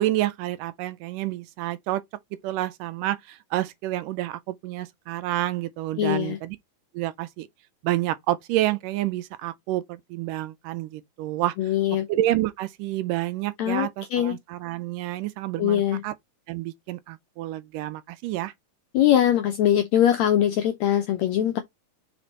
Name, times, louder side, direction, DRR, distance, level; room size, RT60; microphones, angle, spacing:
voice 1, 0.0-2.0 2.3-6.6 6.9-7.5 7.8-11.7 12.1-16.1 16.5-18.5, right 15 dB, 80° right, 2.0 m, -29 dB
voice 2, 6.0-6.4 11.6-12.1 13.6-14.4 15.6-16.0 18.9-21.6, left 11 dB, 80° left, 1.6 m, -22 dB
5.2 x 5.0 x 4.1 m
omnidirectional pair, 4.0 m